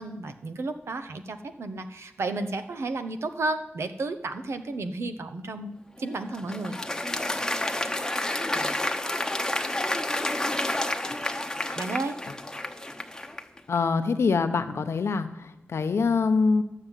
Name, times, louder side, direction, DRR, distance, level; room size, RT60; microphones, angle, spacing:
voice 1, 0.0-5.7 6.0-6.8 11.7-12.2 14.7-14.8, right 2 dB, 85° right, 8 dB, 1.1 m, -32 dB
Applause, 6.0-13.6, left 1 dB, 15° left, 1.0 m, -30 dB
voice 2, 13.7-16.6, left 4 dB, 90° left, 8 dB, 1.0 m, -25 dB
12.0 x 7.5 x 9.2 m, 0.94 s
wide cardioid pair, 90°, 4 cm